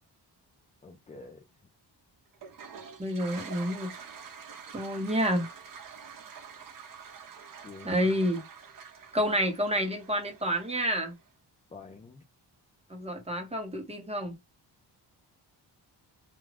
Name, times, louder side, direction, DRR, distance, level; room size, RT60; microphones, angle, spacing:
voice 1, 0.8-1.4 7.6-8.1 11.7-12.2, left 4 dB, 20° left, 0.3 m, -47 dB
Toilet flush, 2.3-11.2, right 6 dB, 50° right, 0.8 m, -47 dB
voice 2, 3.0-3.9 4.7-5.5 7.8-8.4 9.1-11.1 12.9-14.3, equal, 15° right, 0.9 m, -29 dB
2.4 x 2.3 x 3.2 m
wide cardioid pair, 130°, 43 cm